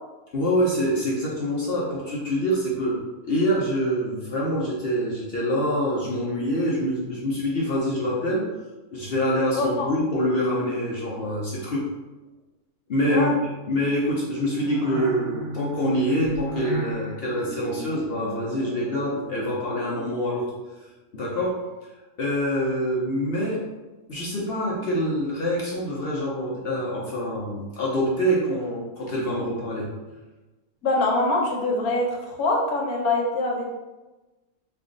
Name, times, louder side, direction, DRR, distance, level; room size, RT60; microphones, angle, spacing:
voice 1, 0.3-3.0 3.2-8.4 8.9-11.9 12.9-13.3 13.7-20.5 20.8-20.9 21.1-21.6 22.2-23.6 24.1-29.9, equal, 55° left, -5 dB, 0.7 m, -25 dB
voice 2, 9.6-9.9 13.1-13.3 30.8-33.7, left 2 dB, 85° left, 0 dB, 1.2 m, -24 dB
sound 1, 13.7-20.1, right 2 dB, 60° right, 1.3 m, -35 dB
3.3 x 2.3 x 3.7 m, 1.1 s
omnidirectional pair, 1.5 m